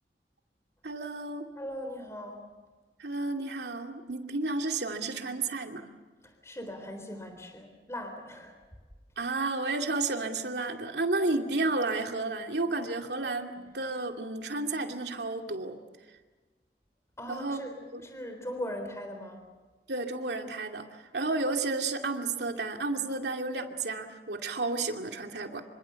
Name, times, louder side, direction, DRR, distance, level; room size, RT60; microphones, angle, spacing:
voice 1, 0.8-1.5 3.0-5.9 9.2-15.8 17.3-18.0 19.9-20.9 21.1-25.6, right 3 dB, 75° right, 3 dB, 2.5 m, -32 dB
voice 2, 1.6-2.4 6.2-8.6 17.2-17.8 18.0-19.4, left 1 dB, 15° left, 5 dB, 3.7 m, -39 dB
27.0 x 25.0 x 7.1 m, 1.3 s
head